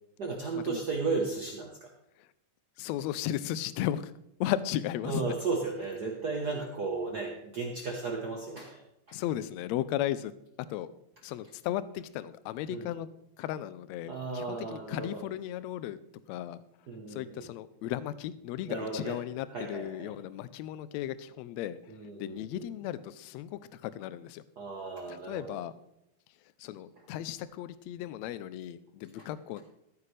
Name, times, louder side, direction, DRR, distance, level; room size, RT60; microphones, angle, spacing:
voice 1, 0.2-1.9 5.0-8.8 9.1-9.2 12.7-12.9 14.1-15.2 16.9-17.5 18.6-19.2 19.5-20.1 21.9-22.7 24.6-25.6 29.2-29.3, right 4 dB, 70° right, 1 dB, 0.9 m, -35 dB
voice 2, 2.8-4.1 4.4-5.3 9.1-10.3 10.7-10.9 11.2-13.1 13.4-16.0 16.3-16.6 17.1-24.4 25.1-25.7 26.6-29.6, left 12 dB, 80° left, 15 dB, 1.7 m, -35 dB
14.5 x 9.4 x 3.3 m, 0.83 s
omnidirectional pair, 3.5 m